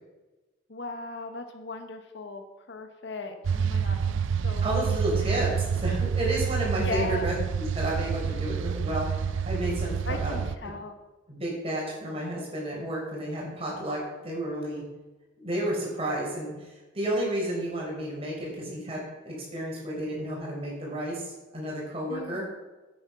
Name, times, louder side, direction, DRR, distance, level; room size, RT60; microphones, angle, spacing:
voice 1, 0.7-4.6 5.1-5.3 6.8-7.4 10.0-11.0 22.1-22.4, left 2 dB, 60° left, 6 dB, 1.1 m, -37 dB
sound 1, 3.4-10.6, right 6 dB, 70° right, 0.4 m, -28 dB
voice 2, 4.6-9.1 9.5-10.7 11.3-14.8 15.4-22.4, right 1 dB, 30° right, -3 dB, 4.3 m, -31 dB
9.9 x 8.7 x 5.7 m, 1.1 s
head